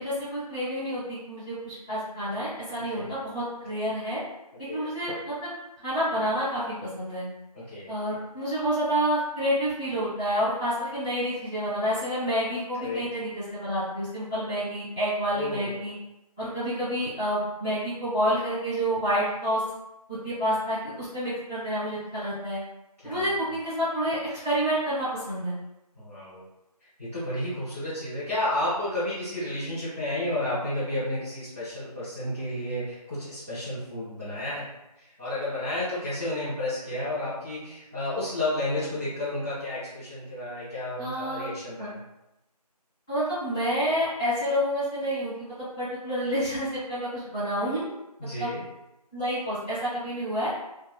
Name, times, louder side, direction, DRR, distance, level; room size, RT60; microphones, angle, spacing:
voice 1, 0.0-4.2 4.7-5.5 5.8-7.2 7.9-15.9 16.4-19.6 20.1-22.6 23.0-24.2 24.4-25.5 41.0-41.5 41.8-41.9 43.1-47.9 48.4-48.5 49.1-50.5, equal, 10° left, -18 dB, 1.0 m, -29 dB
voice 2, 7.5-7.9 12.8-13.0 15.3-15.9 23.0-23.3 25.9-26.4 27.0-34.7 35.0-42.0 48.2-48.6, left 1 dB, 20° right, -14 dB, 1.0 m, -31 dB
2.7 x 2.4 x 2.2 m, 0.92 s
figure-of-eight pair, 165°, 21 cm